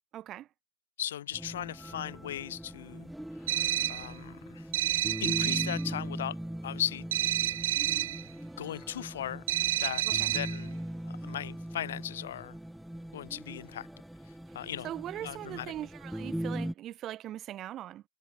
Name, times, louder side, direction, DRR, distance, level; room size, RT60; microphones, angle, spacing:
voice 1, 0.1-0.5 10.0-10.3 14.8-18.0, right 12 dB, 25° right, 2.4 m, -40 dB
voice 2, 1.0-4.7 5.2-6.4 6.6-7.1 8.6-10.8 11.1-12.6 13.1-13.9 14.3-14.9 15.2-15.7, left 11 dB, 60° left, 1.8 m, -38 dB
sound 1, 1.3-16.7, right 1 dB, ahead, 1.8 m, -40 dB
sound 2, 3.5-4.1 4.7-5.8 7.1-8.2 9.5-10.6, right 13 dB, 60° right, 1.1 m, -29 dB
hypercardioid pair, 140°, 0 cm